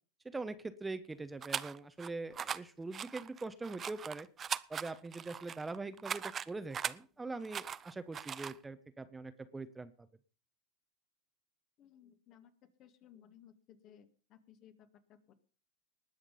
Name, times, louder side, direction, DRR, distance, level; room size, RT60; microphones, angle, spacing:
voice 1, 0.2-4.3 4.7-9.9, right 3 dB, 15° right, 11 dB, 1.0 m, -43 dB
sound 1, 1.4-2.1 2.3-2.6 2.9-7.0 7.4-8.6, right 7 dB, 30° right, 0.6 m, -40 dB
voice 2, 11.8-12.5 12.8-15.3, left 9 dB, 45° left, 9 dB, 2.0 m, -60 dB
19.5 x 6.5 x 5.4 m, 0.39 s
hypercardioid pair, 90°, 0 cm